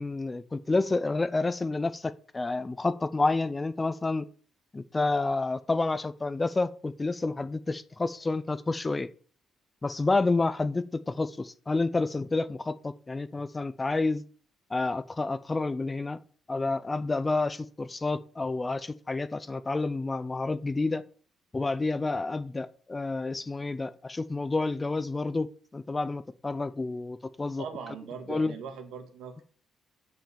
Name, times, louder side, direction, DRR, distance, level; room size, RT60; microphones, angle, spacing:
voice 1, 0.0-4.2 4.7-9.1 9.8-14.2 14.7-16.2 16.5-21.0 21.5-25.5 25.7-27.6 28.3-28.5, left 3 dB, 20° left, 15 dB, 0.7 m, -29 dB
voice 2, 27.6-29.4, right 6 dB, 85° right, 6 dB, 1.9 m, -40 dB
7.4 x 5.7 x 7.0 m, 0.43 s
cardioid pair, 90°, 0 cm